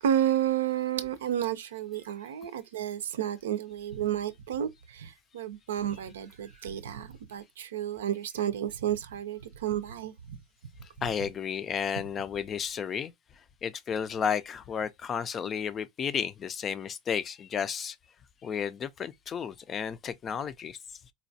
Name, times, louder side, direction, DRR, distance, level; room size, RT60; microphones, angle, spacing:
voice 1, 0.0-10.4, right 10 dB, 85° right, 0.5 m, -31 dB
voice 2, 11.0-13.1 13.6-18.0 18.4-20.8, left 7 dB, 30° left, 0.4 m, -32 dB
4.1 x 2.3 x 2.6 m
hypercardioid pair, 105°, 0 cm